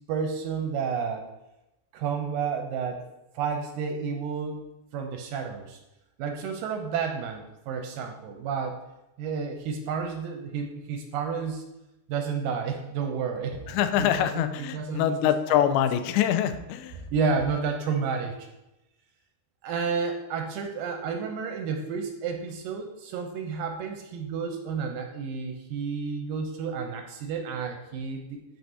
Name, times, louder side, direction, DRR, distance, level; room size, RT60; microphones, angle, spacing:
voice 1, 0.1-1.3 1.9-3.1 3.3-4.6 4.9-5.8 6.2-8.8 9.2-11.6 12.1-15.2 15.5-15.7 17.1-18.5 19.6-28.4, right 5 dB, 80° right, 4 dB, 2.2 m, -31 dB
voice 2, 13.7-17.0, left 10 dB, 90° left, 10 dB, 2.4 m, -24 dB
11.0 x 4.6 x 2.7 m, 0.94 s
omnidirectional pair, 4.2 m